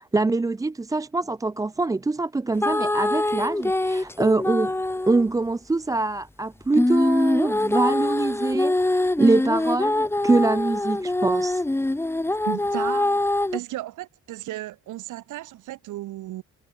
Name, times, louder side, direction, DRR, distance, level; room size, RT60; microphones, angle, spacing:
voice 1, 0.0-4.7 5.1-11.6, right 3 dB, 10° right, 0.4 m, -24 dB
sound 1, 2.6-5.2 6.7-13.6, left 2 dB, 10° left, 1.0 m, -24 dB
voice 2, 12.4-16.4, right 15 dB, 80° right, 1.5 m, -35 dB
cardioid pair, 90°, 30 cm